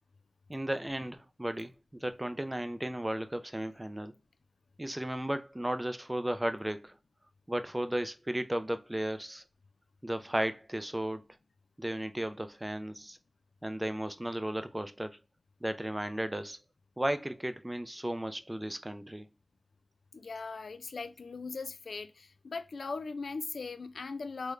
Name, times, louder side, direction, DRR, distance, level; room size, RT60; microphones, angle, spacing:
voice 1, 0.5-4.1 4.8-6.9 7.5-9.4 10.0-11.2 11.8-13.2 13.6-15.2 15.6-16.6 17.0-19.3, right 1 dB, 15° right, 0.4 m, -35 dB
voice 2, 20.1-24.5, left 4 dB, 90° left, 0.3 m, -39 dB
3.6 x 2.1 x 3.1 m
wide cardioid pair, 60°, 0 cm